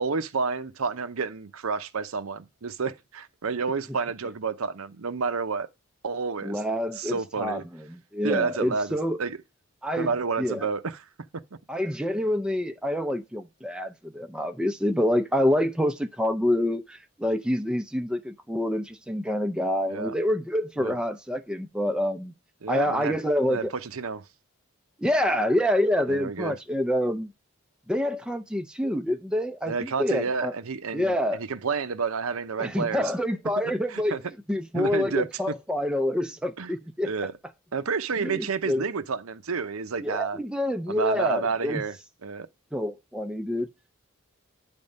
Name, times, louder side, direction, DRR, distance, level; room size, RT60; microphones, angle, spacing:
voice 1, 0.0-5.7 6.0-6.6 7.0-7.6 8.2-9.4 10.0-11.1 19.9-20.1 20.8-21.0 22.6-23.1 23.5-24.2 26.1-26.6 29.7-33.1 33.9-34.2 34.7-35.3 36.6-36.7 37.0-37.3 37.7-40.4 40.9-42.0 42.2-42.5, right 5 dB, 80° right, 0.7 m, -30 dB
voice 2, 6.4-7.6 7.9-9.2 9.8-10.1 10.4-10.7 11.7-22.3 22.7-23.7 25.0-27.3 27.9-30.5 30.9-31.4 32.6-34.2 34.5-37.1 38.2-38.9 40.0-41.8 42.7-43.7, left 1 dB, 5° right, 0.5 m, -27 dB
9.7 x 3.6 x 5.3 m
head